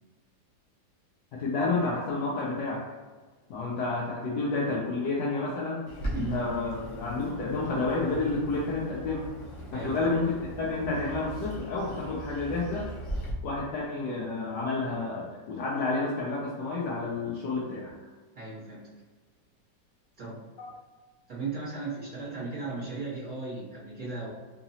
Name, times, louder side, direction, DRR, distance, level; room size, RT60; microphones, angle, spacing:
voice 1, 1.3-2.8 3.5-5.8 6.1-9.3 9.7-12.9 13.4-18.0 20.6-20.7, left 3 dB, 70° left, -5 dB, 1.2 m, -30 dB
Bird, 5.9-13.3, right 1 dB, 55° left, 1.0 m, -39 dB
voice 2, 6.1-6.4 9.6-10.2 18.3-18.9 20.2-20.5 21.3-24.3, right 3 dB, 55° right, -8 dB, 1.3 m, -36 dB
3.9 x 2.8 x 2.8 m, 1.4 s
omnidirectional pair, 2.0 m